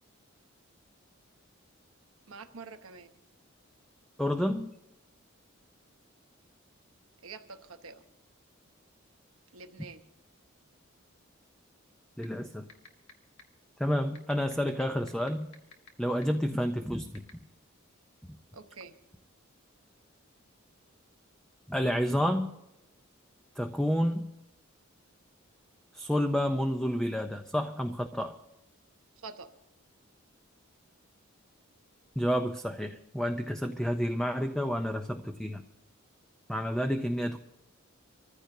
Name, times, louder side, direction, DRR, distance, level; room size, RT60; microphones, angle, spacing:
voice 1, 2.3-3.1 7.2-8.0 9.5-10.1 18.5-19.0 29.2-29.5, right 4 dB, 85° right, 8 dB, 1.0 m, -46 dB
voice 2, 4.2-4.7 12.2-12.7 13.8-15.5 16.0-17.2 18.2-18.4 21.7-22.5 23.6-24.3 25.9-28.4 32.2-35.6 36.5-37.4, equal, 5° left, 6 dB, 0.4 m, -30 dB
sound 1, 12.2-12.3 12.7-13.1 13.4-13.5 14.1-15.9 16.2-16.3 17.1-17.3, left 5 dB, 75° left, 1.6 m, -48 dB
25.0 x 14.5 x 2.7 m, 0.90 s
head